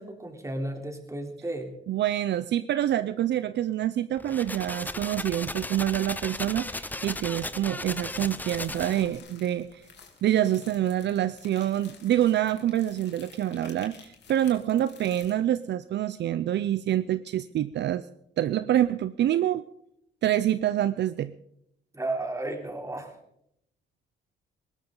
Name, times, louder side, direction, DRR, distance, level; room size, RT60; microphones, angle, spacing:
voice 1, 0.0-1.7 21.9-23.1, right 2 dB, 15° right, 2 dB, 3.3 m, -33 dB
voice 2, 1.9-9.8 10.2-18.1 18.4-19.6 20.2-21.3, right 12 dB, 60° right, 14 dB, 0.5 m, -26 dB
sound 1, 4.2-9.2, left 2 dB, 10° left, 0.7 m, -36 dB
sound 2, 7.9-15.3, left 6 dB, 60° left, 3.1 m, -51 dB
19.5 x 17.0 x 3.9 m, 0.76 s
cardioid pair, 90°, 20 cm